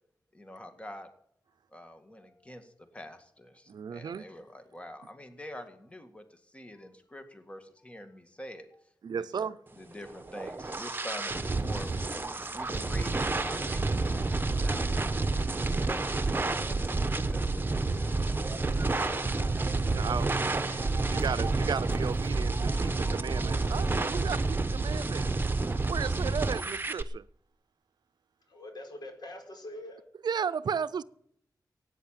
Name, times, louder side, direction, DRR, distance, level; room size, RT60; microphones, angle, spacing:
voice 1, 0.3-1.1 1.7-14.2 14.6-19.3, left 1 dB, 15° left, 2.0 m, -46 dB
voice 2, 3.7-4.3 9.0-9.6 19.9-20.6 21.1-25.3 25.9-27.2 30.2-31.0, right 7 dB, 80° right, 0.6 m, -34 dB
sound 1, 10.1-27.0, right 3 dB, 30° right, 1.1 m, -29 dB
Run, 10.3-15.9, right 1 dB, 5° right, 3.9 m, -52 dB
sound 2, 18.4-23.5, right 4 dB, 45° right, 0.7 m, -41 dB
voice 3, 20.2-20.9 28.5-30.0, left 1 dB, 85° left, 4.7 m, -45 dB
16.5 x 9.3 x 9.0 m
wide cardioid pair, 85°, 7 cm